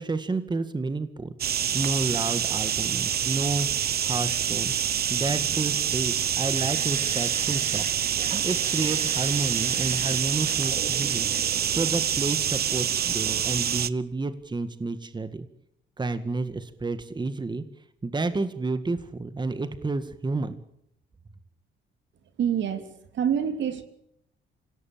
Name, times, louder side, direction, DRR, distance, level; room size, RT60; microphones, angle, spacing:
voice 1, 0.0-3.7 4.0-4.7 5.1-7.9 8.4-11.3 11.7-15.5 16.0-17.6 18.0-20.6, right 3 dB, 20° right, 10 dB, 2.0 m, -30 dB
sound 1, 1.4-13.9, right 9 dB, 50° right, 0.9 m, -26 dB
sound 2, 6.5-12.5 13.8-14.1 14.4-14.5, right 4 dB, 35° right, 3.0 m, -40 dB
voice 2, 22.4-22.9 23.1-23.8, right 8 dB, 70° right, 8 dB, 3.1 m, -26 dB
26.5 x 17.5 x 8.7 m, 0.75 s
cardioid pair, 90°, 20 cm